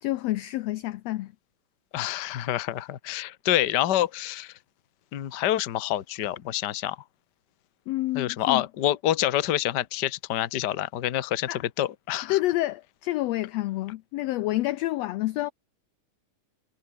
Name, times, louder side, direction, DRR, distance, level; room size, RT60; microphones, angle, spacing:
voice 1, 0.0-1.3 7.9-8.6 11.5-11.6 12.3-15.5, left 17 dB, 80° left, 1.5 m, -28 dB
voice 2, 1.9-4.5 5.1-7.0 8.1-12.4, left 13 dB, 55° left, 1.2 m, -27 dB
omnidirectional pair, 3.5 m